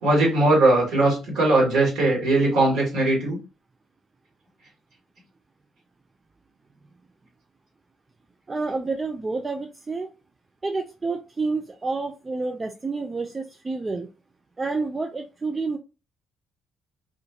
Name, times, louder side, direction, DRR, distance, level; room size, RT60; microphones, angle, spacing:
voice 1, 0.0-3.4, right 2 dB, 60° right, -4 dB, 1.3 m, -20 dB
voice 2, 8.5-10.1 10.6-14.1 14.6-15.8, right 3 dB, 25° right, 3 dB, 0.3 m, -29 dB
2.4 x 2.3 x 2.7 m, 0.31 s
figure-of-eight pair, 45°, 0 cm